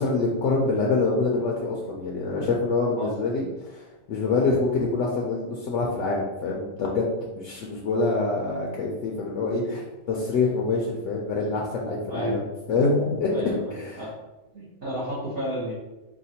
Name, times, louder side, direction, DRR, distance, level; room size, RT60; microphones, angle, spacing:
voice 1, 0.0-12.4 12.7-14.0, left 3 dB, 75° left, -2 dB, 0.9 m, -26 dB
voice 2, 13.3-14.1 14.5-15.7, right 1 dB, 55° right, -7 dB, 1.1 m, -31 dB
4.9 x 2.2 x 2.7 m, 1.1 s
omnidirectional pair, 1.3 m